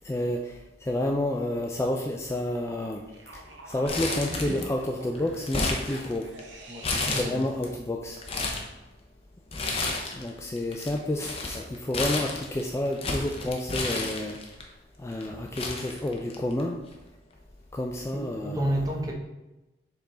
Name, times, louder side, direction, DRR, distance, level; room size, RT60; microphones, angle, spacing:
voice 1, 0.0-3.0 3.7-6.3 6.9-8.2 10.1-14.4 15.0-16.8 17.7-18.7, left 1 dB, 15° left, 1 dB, 0.3 m, -30 dB
sound 1, 3.1-7.5 7.8-7.9, right 1 dB, 70° right, 0.9 m, -42 dB
Crumpling crinkling, 3.9-4.9 5.1-6.4 6.8-7.7 8.1-8.7 9.5-10.3 10.6-14.6 15.2-15.3 15.6-16.6 16.9-17.0 18.0-18.2, left 3 dB, 30° left, 0.8 m, -31 dB
voice 2, 6.7-7.5 18.1-19.1, right 1 dB, 20° right, 0 dB, 0.9 m, -31 dB
7.0 x 3.6 x 3.8 m, 1.0 s
head